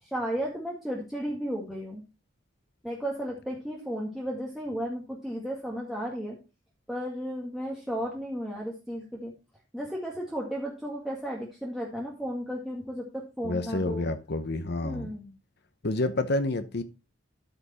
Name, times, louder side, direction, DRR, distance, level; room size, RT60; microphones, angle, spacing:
voice 1, 0.0-2.0 2.8-6.4 6.9-9.3 9.7-14.1 14.8-15.3, equal, ahead, 1.9 m, -34 dB
voice 2, 13.4-15.1 15.8-16.8, left 2 dB, 60° left, 0.9 m, -29 dB
12.5 x 5.3 x 4.2 m
head